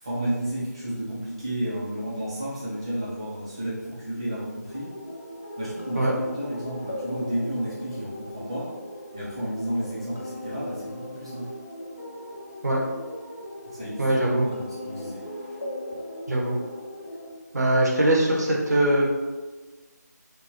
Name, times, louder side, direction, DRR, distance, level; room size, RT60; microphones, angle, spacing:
voice 1, 0.0-4.9 5.6-8.8 9.1-11.5 13.6-15.6, right 1 dB, 15° right, -9 dB, 0.4 m, -32 dB
sound 1, 4.7-17.3, left 1 dB, 45° left, 0.4 m, -38 dB
voice 2, 14.0-14.5 16.3-16.6 17.5-19.0, right 1 dB, 65° right, -3 dB, 0.7 m, -21 dB
2.2 x 2.1 x 2.8 m, 1.3 s
figure-of-eight pair, 165°, 10 cm